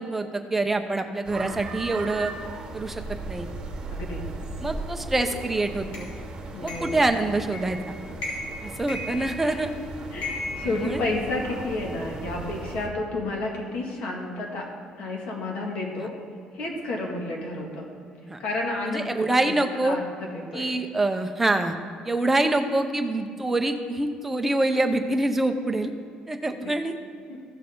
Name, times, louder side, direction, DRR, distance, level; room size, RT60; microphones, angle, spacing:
voice 1, 0.0-2.3 2.7-3.0 3.3-3.5 4.6-6.1 6.6-8.0 8.6-9.7 10.6-11.0 18.2-18.4 18.9-20.0 20.5-21.8 22.0-25.9 26.3-26.9, right 2 dB, 10° right, 5 dB, 0.6 m, -25 dB
sound 1, 1.2-12.9, right 2 dB, 35° right, 1.2 m, -37 dB
voice 2, 3.9-4.2 6.5-7.0 9.4-9.6 10.1-14.7 15.0-16.1 16.5-17.9 18.4-19.0 19.4-19.6 19.8-20.7, left 2 dB, 60° left, -1 dB, 1.9 m, -31 dB
sound 2, 5.9-6.1 6.7-7.0 7.5-7.8 8.2-8.6 8.9-9.7 10.2-11.5, left 2 dB, 80° left, 2.7 m, -35 dB
15.0 x 6.5 x 3.8 m, 2.3 s
cardioid pair, 150°, 2 cm